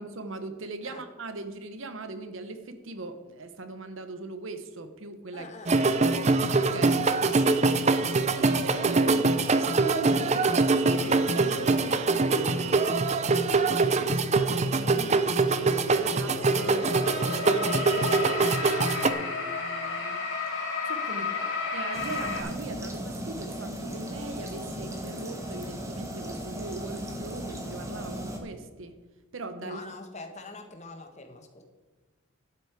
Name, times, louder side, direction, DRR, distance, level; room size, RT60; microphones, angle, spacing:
voice 1, 0.0-5.5 6.7-7.1 8.4-16.9 17.2-18.6 19.0-20.3 20.8-21.3 21.6-29.0 29.3-29.8, right 2 dB, 70° right, 9 dB, 0.9 m, -39 dB
voice 2, 5.3-5.9 8.5-9.1 21.1-21.5 29.6-31.6, left 2 dB, 35° left, 5 dB, 1.4 m, -44 dB
sound 1, 5.7-19.1, right 3 dB, 35° right, 0.5 m, -24 dB
sound 2, 10.9-12.1 12.9-13.0 14.5-22.4, left 4 dB, 75° left, 3.4 m, -33 dB
sound 3, 21.9-28.4, equal, 15° right, 1.4 m, -37 dB
12.0 x 8.4 x 4.6 m, 1.4 s
head